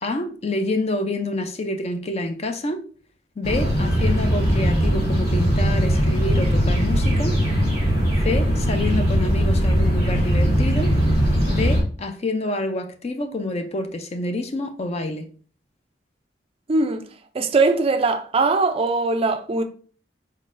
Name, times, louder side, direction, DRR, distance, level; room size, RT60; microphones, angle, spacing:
voice 1, 0.0-2.8 3.4-7.4 8.2-10.9 11.5-15.3, left 2 dB, 35° left, 0.4 m, -27 dB
sound 1, 3.4-11.8, equal, 55° left, 2.1 m, -20 dB
voice 2, 16.7-17.0 17.3-19.6, right 3 dB, 35° right, 0.4 m, -20 dB
4.1 x 3.8 x 2.5 m
head